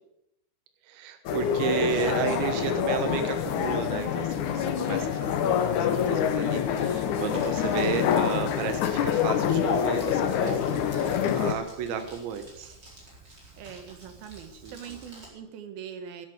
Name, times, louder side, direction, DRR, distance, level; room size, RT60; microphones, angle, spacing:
voice 1, 0.9-12.7 14.6-15.0, right 6 dB, 80° right, 7 dB, 3.7 m, -32 dB
sound 1, 1.3-11.5, left 8 dB, 85° left, 1.7 m, -26 dB
Crumpling crinkling, 7.1-15.3, right 2 dB, 25° right, 4.6 m, -50 dB
voice 2, 13.6-16.3, right 8 dB, 65° right, 7 dB, 3.0 m, -42 dB
12.5 x 11.5 x 8.0 m, 0.85 s
omnidirectional pair, 5.2 m